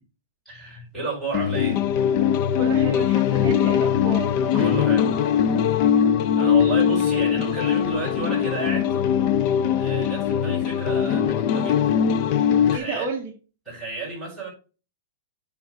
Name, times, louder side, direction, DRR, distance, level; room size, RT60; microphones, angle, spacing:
voice 1, 0.5-1.9 4.5-5.2 6.4-9.0 9.8-12.0 12.7-13.1 13.7-14.5, right 3 dB, ahead, 4.1 m, -32 dB
sound 1, 1.3-12.8, left 8 dB, 35° left, 0.5 m, -21 dB
voice 2, 2.6-4.3 12.7-13.3, right 4 dB, 25° right, 1.2 m, -31 dB
8.9 x 3.5 x 4.8 m
supercardioid pair, 165°, 0 cm